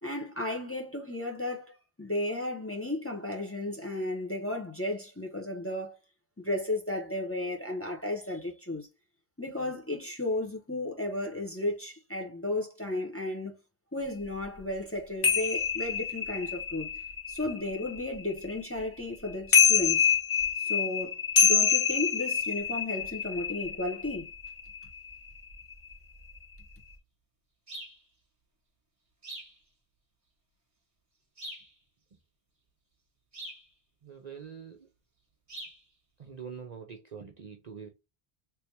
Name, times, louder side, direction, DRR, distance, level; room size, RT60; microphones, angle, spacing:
voice 1, 0.0-1.7 2.0-6.0 6.4-8.9 9.4-13.6 13.9-16.9 17.3-20.1 20.6-21.2 21.4-24.3, left 2 dB, 15° left, 0.7 m, -34 dB
sound 1, 15.2-18.7 19.3-25.3 25.6-25.9, left 7 dB, 55° left, 1.1 m, -26 dB
sound 2, 27.7-28.0 29.2-29.6 31.4-31.7 33.3-33.7 35.5-35.8, right 1 dB, 30° right, 1.5 m, -42 dB
voice 2, 34.0-34.9 36.2-37.9, right 7 dB, 45° right, 0.6 m, -44 dB
3.4 x 3.3 x 2.8 m
omnidirectional pair, 1.1 m